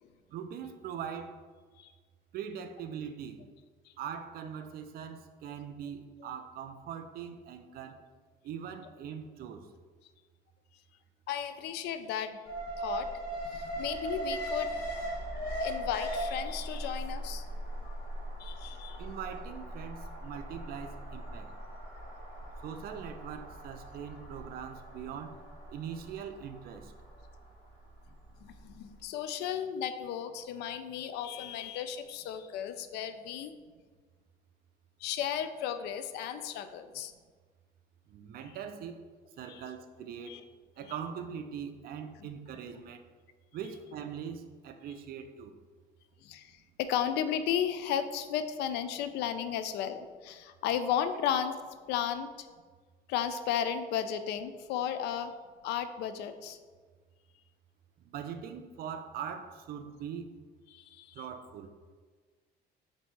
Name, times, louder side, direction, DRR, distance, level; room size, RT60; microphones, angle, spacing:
voice 1, 0.3-1.4 2.3-3.4 4.0-8.0 8.4-9.7 19.0-21.5 22.6-25.3 25.7-26.9 38.1-39.0 39.4-40.4 40.8-43.0 43.5-45.5 58.0-60.3 61.1-61.7, right 8 dB, 65° right, 8 dB, 0.4 m, -41 dB
voice 2, 11.3-12.4 12.8-13.1 13.5-14.7 15.6-17.4 17.8-17.9 18.4-19.0 28.4-33.5 35.0-37.1 39.5-39.6 40.3-40.4 46.2-51.5 51.9-52.3 53.1-55.3 55.6-56.6 60.7-61.2, left 9 dB, 80° left, 10 dB, 0.4 m, -34 dB
Alarm, 12.4-28.6 28.9-29.0, right 1 dB, 60° left, 1.3 m, -39 dB
4.2 x 2.7 x 4.5 m, 1.5 s
cardioid pair, 110°, 17 cm